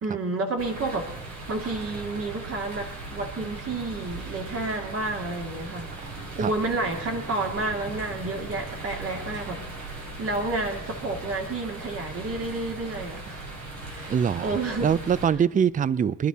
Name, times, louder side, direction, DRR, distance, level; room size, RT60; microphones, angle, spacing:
voice 1, 0.0-13.5 13.9-14.1 14.4-14.9, right 2 dB, 50° right, 2 dB, 2.4 m, -30 dB
sound 1, 0.6-15.3, right 2 dB, 85° right, 3.6 m, -38 dB
voice 2, 14.1-16.3, right 8 dB, 25° right, 20 dB, 0.4 m, -24 dB
21.0 x 11.0 x 4.1 m, 0.97 s
cardioid pair, 90°, 30 cm